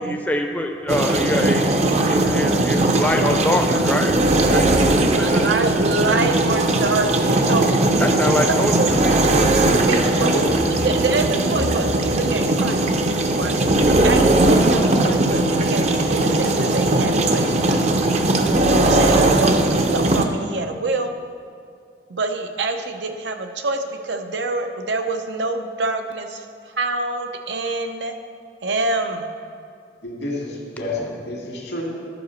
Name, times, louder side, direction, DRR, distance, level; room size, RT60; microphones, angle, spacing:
voice 1, 0.0-5.4 8.0-9.2 30.9-31.1, left 1 dB, 10° left, 3 dB, 0.5 m, -25 dB
sound 1, 0.9-20.2, right 2 dB, 40° right, 0.6 m, -19 dB
voice 2, 3.2-3.6 5.2-7.8 8.2-8.9 9.8-10.3 10.8-17.9 18.7-21.1 22.1-28.1 28.6-29.3, right 3 dB, 85° right, 6 dB, 0.7 m, -26 dB
voice 3, 9.9-10.4 30.0-31.8, left 1 dB, 85° left, -1 dB, 2.2 m, -29 dB
11.0 x 4.9 x 6.4 m, 2.3 s
head